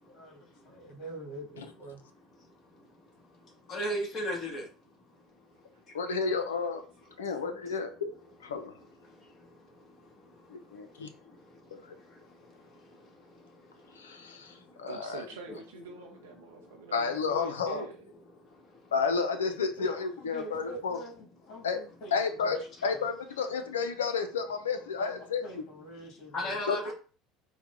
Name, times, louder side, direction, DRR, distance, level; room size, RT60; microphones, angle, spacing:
voice 1, 0.0-2.0 14.3-14.4 19.8-23.1 25.0-25.2 25.4-26.9, right 1 dB, 60° left, 1.8 m, -46 dB
voice 2, 3.7-4.7 26.3-26.9, equal, 45° left, 1.8 m, -33 dB
voice 3, 5.9-6.8 7.2-8.1 8.4-8.7 10.5-11.1 11.7-11.9 14.0-15.2 16.9-17.9 18.9-21.0 21.6-21.8 22.1-25.4 26.7-26.8, left 5 dB, 90° left, 0.7 m, -31 dB
voice 4, 14.9-18.0, right 6 dB, 85° right, 0.6 m, -45 dB
4.5 x 2.3 x 3.7 m
hypercardioid pair, 75°, 0 cm